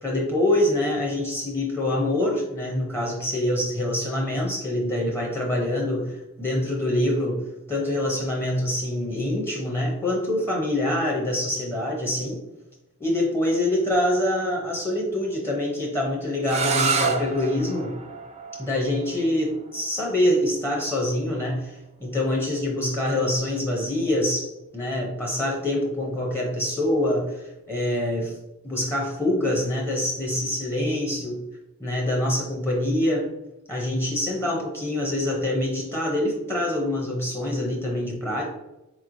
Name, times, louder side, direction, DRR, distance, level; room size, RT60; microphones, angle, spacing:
voice 1, 0.0-7.4 7.7-12.4 13.0-17.9 18.6-21.7 22.0-28.3 28.6-31.4 31.8-33.3 33.7-38.5, left 1 dB, 10° left, -2 dB, 0.7 m, -25 dB
sound 1, 16.4-22.2, right 4 dB, 30° right, 0.4 m, -30 dB
4.2 x 3.0 x 2.6 m, 0.99 s
head